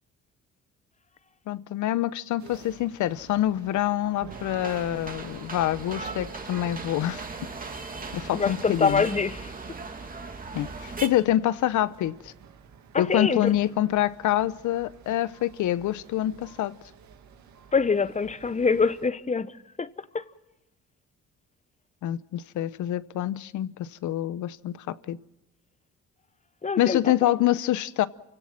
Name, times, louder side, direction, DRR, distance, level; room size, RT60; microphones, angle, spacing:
voice 1, 1.5-7.5 8.1-9.0 10.5-12.3 13.0-16.7 22.0-25.2 26.8-28.1, left 13 dB, 75° left, 0.8 m, -26 dB
sound 1, 2.4-19.1, right 7 dB, 70° right, 2.2 m, -50 dB
sound 2, 4.3-11.1, right 4 dB, 30° right, 2.3 m, -38 dB
voice 2, 8.3-9.5 12.9-13.5 17.7-19.5 19.8-19.9 20.1-20.2 26.6-27.0, left 5 dB, 25° left, 1.0 m, -24 dB
29.0 x 17.0 x 7.5 m
cardioid pair, 90°, 30 cm